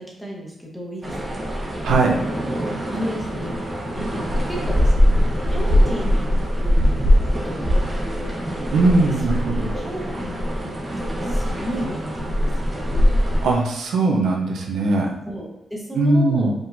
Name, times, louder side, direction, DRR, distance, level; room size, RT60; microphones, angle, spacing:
voice 1, 0.0-1.5 2.9-5.1 5.5-6.9 7.3-8.4 9.0-9.1 9.7-13.0 15.2-16.5, equal, ahead, -3 dB, 1.1 m, -33 dB
sound 1, 1.0-13.6, equal, 25° right, 1.1 m, -22 dB
voice 2, 1.8-2.2 8.7-9.7 13.4-15.1 15.9-16.5, right 2 dB, 90° right, 0 dB, 0.8 m, -19 dB
5.0 x 3.7 x 2.7 m, 0.86 s
wide cardioid pair, 135°, 0 cm